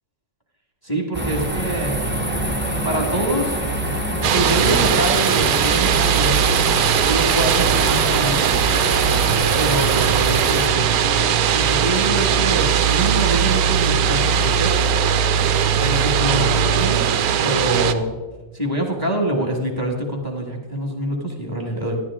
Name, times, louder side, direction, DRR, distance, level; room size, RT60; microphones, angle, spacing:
voice 1, 0.8-2.1 2.8-3.6 4.2-6.7 7.0-8.6 9.6-11.0 11.5-14.9 15.8-17.0 17.4-18.1 18.5-22.0, right 1 dB, 15° left, 1 dB, 1.3 m, -25 dB
sound 1, 1.1-10.7, right 1 dB, 10° right, 0.5 m, -25 dB
sound 2, 4.2-17.9, right 8 dB, 70° right, 1.0 m, -19 dB
12.5 x 11.0 x 3.6 m, 1.2 s
omnidirectional pair, 1.8 m